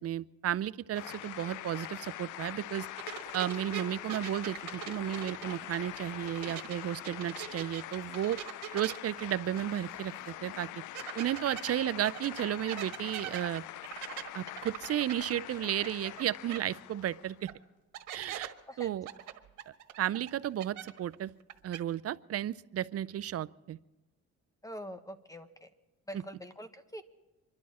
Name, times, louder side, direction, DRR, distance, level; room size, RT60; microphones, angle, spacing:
voice 1, 0.0-2.9 3.3-8.4 8.7-10.1 10.4-10.7 11.2-13.6 14.3-17.5 18.1-19.1 20.0-21.3 21.6-23.8 26.1-26.2, right 11 dB, 50° right, 16 dB, 0.5 m, -33 dB
sound 1, 0.9-17.5, left 15 dB, 85° left, 0.5 m, -44 dB
sound 2, 3.0-6.8 7.0-9.9 10.2-10.3 10.9-16.2 16.5-16.6 17.5-17.6 17.9-18.5 19.1-21.1 21.4-21.8, right 11 dB, 85° right, 1.5 m, -42 dB
voice 2, 24.6-25.7 26.1-27.0, equal, 10° left, 9 dB, 1.2 m, -44 dB
26.5 x 11.5 x 4.3 m, 1.1 s
cardioid pair, 90°, 30 cm